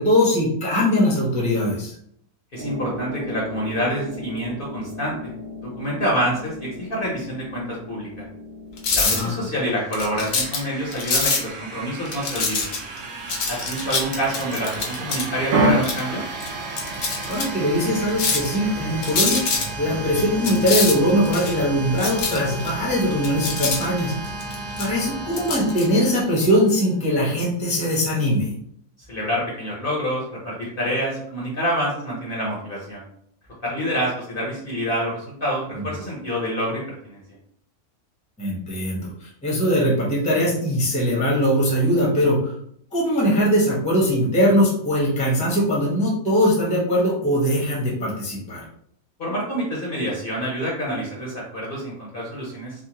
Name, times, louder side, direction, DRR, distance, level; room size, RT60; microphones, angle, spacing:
voice 1, 0.0-1.9 9.0-9.4 17.3-24.1 24.8-28.5 35.7-35.8 38.4-42.5 42.9-48.6, equal, 5° left, -4 dB, 0.7 m, -21 dB
voice 2, 2.5-5.3 5.6-8.3 8.9-12.7 13.5-16.2 29.1-33.0 33.6-37.2 49.2-52.7, equal, 45° left, -4 dB, 0.8 m, -27 dB
sound 1, 2.6-14.1 15.5-15.7, right 1 dB, 90° right, 1.1 m, -31 dB
sound 2, 8.8-9.3 9.9-10.6 10.9-11.4 12.1-13.0 13.3-15.2 15.8-16.0 16.4-16.5 16.8-17.4 18.1-18.6 19.0-19.6 20.4-21.5 22.0-22.7 23.1-24.9 25.3-25.8, left 4 dB, 70° left, 1.1 m, -24 dB
sound 3, 9.3-27.0, right 2 dB, 65° right, 0.8 m, -34 dB
3.5 x 2.2 x 2.8 m, 0.68 s
omnidirectional pair, 1.5 m